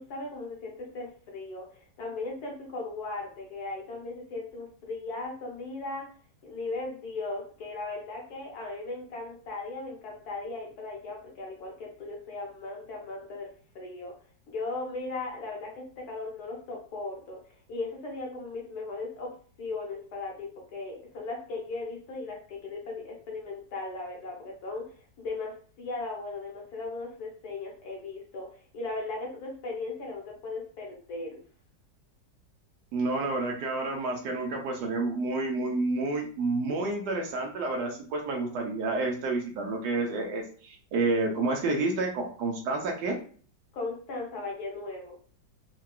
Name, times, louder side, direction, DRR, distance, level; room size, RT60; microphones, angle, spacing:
voice 1, 0.0-6.1 6.4-13.5 13.7-14.1 14.5-17.4 17.7-19.3 19.6-28.5 28.7-31.4 43.7-45.2, left 3 dB, 65° left, 0 dB, 1.2 m, -37 dB
voice 2, 32.9-43.2, right 3 dB, 75° right, 2 dB, 1.1 m, -29 dB
3.7 x 2.2 x 2.2 m, 0.43 s
omnidirectional pair, 2.0 m